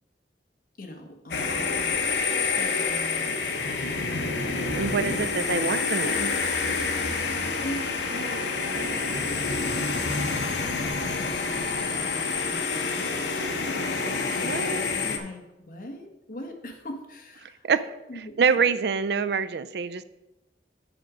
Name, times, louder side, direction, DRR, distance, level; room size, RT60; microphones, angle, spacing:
voice 1, 0.8-2.1 2.5-3.4 3.7-5.9 6.9-14.1 14.3-17.6 18.1-18.4, left 1 dB, 50° left, 3 dB, 1.3 m, -41 dB
sound 1, 1.3-15.2, left 4 dB, 80° left, 0.9 m, -28 dB
voice 2, 4.8-6.3 14.4-14.8 17.4-17.9 18.4-20.0, right 5 dB, 65° right, 14 dB, 0.4 m, -26 dB
8.0 x 5.0 x 6.0 m, 0.97 s
head